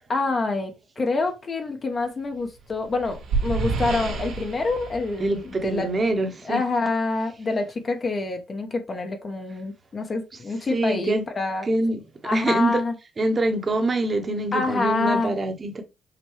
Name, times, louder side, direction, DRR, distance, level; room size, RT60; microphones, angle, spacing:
voice 1, 0.1-0.7 1.0-5.9 6.4-11.7 12.2-12.9 14.5-15.4, left 3 dB, 40° left, 0.8 m, -26 dB
sound 1, 2.5-6.1, right 4 dB, 90° right, 1.7 m, -30 dB
voice 2, 5.2-6.6 10.7-11.2 11.7-12.0 12.3-12.8 13.2-15.8, right 2 dB, 35° right, 1.0 m, -25 dB
5.8 x 2.2 x 3.2 m
cardioid pair, 90°, 0 cm